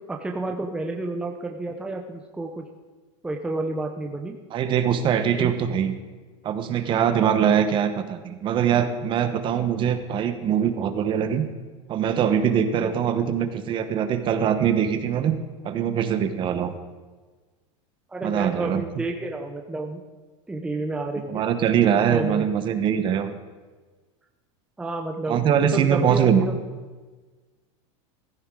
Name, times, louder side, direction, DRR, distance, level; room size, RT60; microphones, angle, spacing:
voice 1, 0.1-2.7 3.2-4.4 5.4-5.5 18.1-20.0 20.5-21.5 22.1-22.5 24.8-26.6, right 2 dB, 5° right, 2 dB, 0.8 m, -30 dB
voice 2, 4.5-5.9 6.4-11.5 11.9-15.4 15.6-16.7 18.2-18.8 21.3-23.3 25.3-26.4, right 8 dB, 30° right, 9 dB, 1.0 m, -22 dB
15.5 x 14.0 x 3.8 m, 1.4 s
supercardioid pair, 150°, 16 cm